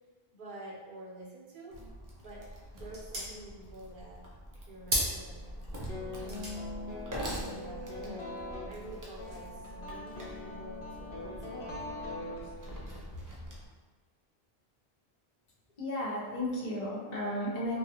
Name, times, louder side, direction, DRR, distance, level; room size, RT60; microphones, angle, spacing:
voice 1, 0.3-1.7 2.2-4.2 4.5-6.4 7.2-8.3 8.7-12.5 13.1-13.2, right 1 dB, 60° right, -5 dB, 0.9 m, -49 dB
Wood, 1.7-13.7, equal, 25° right, 0.4 m, -45 dB
sound 1, 1.9-8.7, equal, 75° right, 1.2 m, -40 dB
sound 2, 5.9-13.0, left 2 dB, 90° left, 0.9 m, -42 dB
voice 2, 15.8-17.8, left 1 dB, 45° left, -6 dB, 0.8 m, -34 dB
3.5 x 2.2 x 2.8 m, 1.3 s
omnidirectional pair, 1.0 m